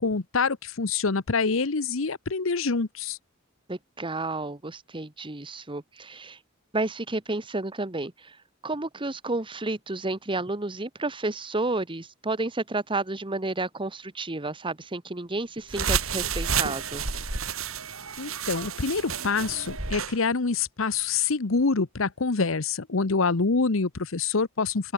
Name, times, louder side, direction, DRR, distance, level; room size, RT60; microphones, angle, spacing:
voice 1, 0.0-3.2 18.2-24.9, left 4 dB, 70° left, 1.0 m, -26 dB
voice 2, 3.7-6.4 6.7-8.4 8.6-17.0, right 2 dB, 25° right, 1.4 m, -31 dB
sound 1, 15.7-20.2, right 6 dB, 90° right, 4.5 m, -30 dB
open air
head